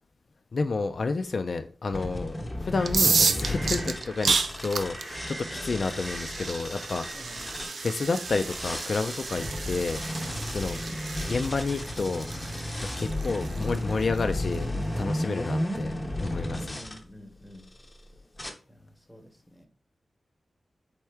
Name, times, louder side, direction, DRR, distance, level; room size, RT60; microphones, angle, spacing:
voice 1, 0.5-4.3 4.6-7.4 7.6-10.0 10.5-11.0 11.2-12.3 12.8-14.7 15.0-15.9 16.2-16.8, left 4 dB, 55° left, 7 dB, 0.3 m, -30 dB
sound 1, 1.9-7.8 8.2-17.0 17.6-18.0 18.4-18.5, left 1 dB, 15° left, 0.6 m, -33 dB
sound 2, 2.7-14.0, right 1 dB, 25° right, 0.8 m, -45 dB
sound 3, 2.8-14.5, right 4 dB, 75° right, 0.4 m, -31 dB
voice 2, 16.7-17.7 18.7-19.7, equal, 5° right, 4 dB, 0.9 m, -49 dB
4.4 x 3.5 x 3.3 m, 0.37 s
wide cardioid pair, 145°, 0 cm